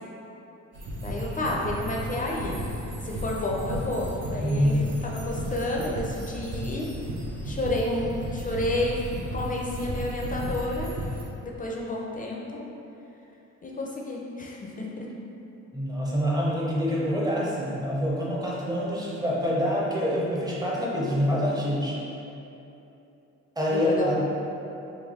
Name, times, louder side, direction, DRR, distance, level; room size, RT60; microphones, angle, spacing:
sound 1, 0.7-11.2, equal, 55° right, 0.7 m, -34 dB
voice 1, 1.0-2.6 3.0-6.9 7.4-9.0 9.3-10.9 11.4-12.6 13.6-15.1 23.7-24.2, left 1 dB, 30° left, -2 dB, 0.4 m, -30 dB
voice 2, 4.4-4.8 15.7-22.0 23.6-24.2, equal, 15° right, -5 dB, 0.7 m, -26 dB
3.3 x 2.2 x 3.6 m, 2.9 s
cardioid pair, 90°, 30 cm